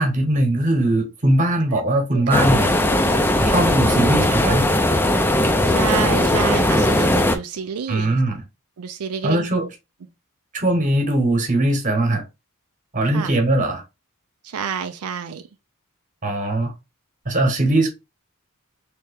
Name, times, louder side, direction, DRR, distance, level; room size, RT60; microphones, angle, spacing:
voice 1, 0.0-2.7 3.4-4.6 7.9-8.4 9.2-9.6 10.5-12.2 12.9-13.8 16.2-16.7 17.2-17.9, right 1 dB, 35° right, 1.1 m, -20 dB
voice 2, 2.1-2.5 5.6-8.2 8.8-9.7 13.1-13.3 14.4-15.4, right 7 dB, 90° right, 0.4 m, -29 dB
sound 1, 2.3-7.4, left 1 dB, 10° left, 0.4 m, -18 dB
3.3 x 2.9 x 3.3 m
head